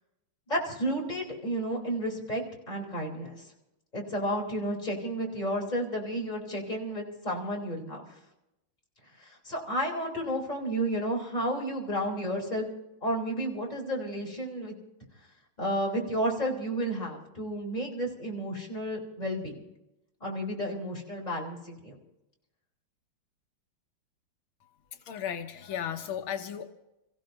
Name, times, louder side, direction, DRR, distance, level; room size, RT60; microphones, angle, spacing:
voice 1, 0.5-3.4 3.9-8.1 9.2-12.7 13.0-14.8 15.6-19.6 20.2-22.0, equal, 20° left, -1 dB, 3.5 m, -32 dB
voice 2, 25.1-26.7, left 9 dB, 85° left, 6 dB, 1.7 m, -35 dB
30.0 x 15.5 x 2.7 m, 0.92 s
omnidirectional pair, 2.2 m